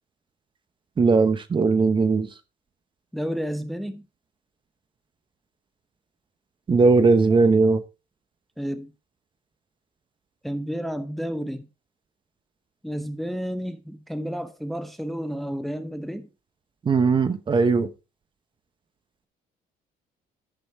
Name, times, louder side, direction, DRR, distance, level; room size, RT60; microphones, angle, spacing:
voice 1, 1.0-2.3 6.7-7.8 16.8-17.9, right 4 dB, 30° right, 0.9 m, -19 dB
voice 2, 3.1-4.0 8.6-8.9 10.4-11.7 12.8-16.3, equal, ahead, 0.8 m, -31 dB
11.5 x 6.2 x 3.5 m
cardioid pair, 110°, 17 cm